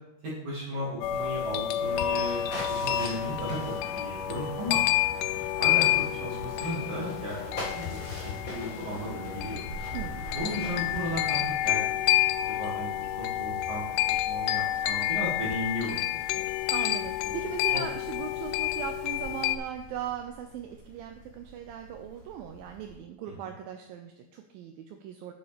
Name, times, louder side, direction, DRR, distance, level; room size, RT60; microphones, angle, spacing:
voice 1, 0.2-2.4 2.7-4.8 5.5-8.0 8.4-9.6 10.3-12.1 12.4-13.8 14.1-16.4 17.2-17.4 17.7-17.8, equal, 50° right, -8 dB, 3.1 m, -35 dB
sound 1, 1.0-19.6, left 13 dB, 85° left, 2.2 m, -29 dB
sound 2, 1.8-11.5, left 1 dB, 45° left, 1.1 m, -42 dB
sound 3, 9.2-23.0, right 2 dB, 70° left, 3.3 m, -49 dB
voice 2, 9.9-10.3 16.7-25.3, right 9 dB, 85° right, 5 dB, 2.0 m, -39 dB
9.5 x 8.0 x 3.3 m, 0.84 s
omnidirectional pair, 4.8 m